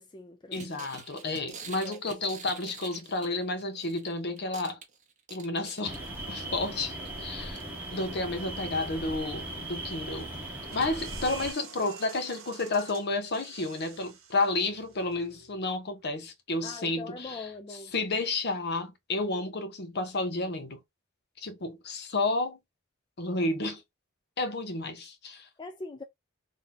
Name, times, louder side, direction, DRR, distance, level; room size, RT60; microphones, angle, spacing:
voice 1, 0.0-0.7 1.6-2.0 16.6-17.9 25.6-26.0, left 3 dB, 20° left, 0.4 m, -42 dB
voice 2, 0.5-4.8 5.3-6.0 6.3-7.6 7.9-10.3 10.7-20.8 21.4-22.6 23.2-23.8 24.4-25.5, left 2 dB, 55° left, 0.8 m, -31 dB
sound 1, 0.5-4.1 4.4-6.3 6.8-7.1 7.6-7.7 7.9-8.0, right 5 dB, 40° right, 0.7 m, -46 dB
sound 2, 5.8-11.5, right 1 dB, 10° right, 1.0 m, -38 dB
sound 3, 10.7-16.1, right 6 dB, 80° right, 0.9 m, -49 dB
2.9 x 2.7 x 3.8 m
head